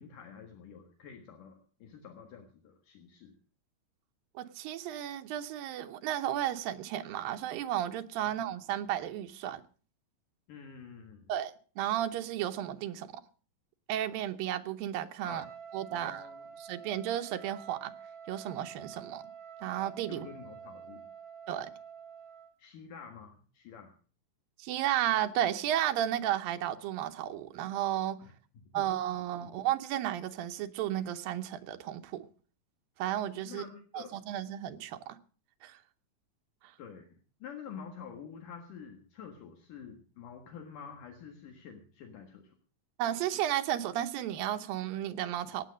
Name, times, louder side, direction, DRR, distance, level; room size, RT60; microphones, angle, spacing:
voice 1, 0.0-3.4 8.2-8.3 10.5-11.3 15.2-15.5 15.9-16.5 20.1-21.1 22.6-23.9 28.2-28.9 29.4-29.6 33.5-34.2 36.8-42.6, left 7 dB, 70° left, 3.1 m, -48 dB
voice 2, 4.4-9.6 11.3-13.2 13.9-15.5 15.7-16.2 16.7-17.9 18.3-19.2 19.6-20.3 21.5-21.7 24.6-28.2 28.7-32.3 33.0-33.6 33.9-35.2 35.6-35.8 43.0-45.6, right 12 dB, 90° right, 2.7 m, -33 dB
Trumpet, 15.2-22.5, right 7 dB, 55° right, 3.7 m, -48 dB
16.5 x 9.4 x 6.2 m
omnidirectional pair, 4.0 m